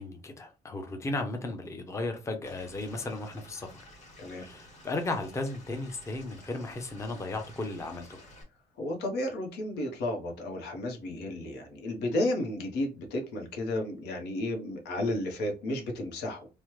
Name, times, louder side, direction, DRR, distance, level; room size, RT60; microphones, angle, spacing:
voice 1, 0.0-3.8 4.4-8.2, left 2 dB, 15° left, 0.5 m, -35 dB
Stream / Liquid, 2.4-8.4, left 1 dB, 45° left, 1.5 m, -52 dB
voice 2, 8.8-16.5, left 1 dB, 85° left, 0.9 m, -32 dB
3.1 x 2.1 x 3.0 m
cardioid pair, 120°, 17 cm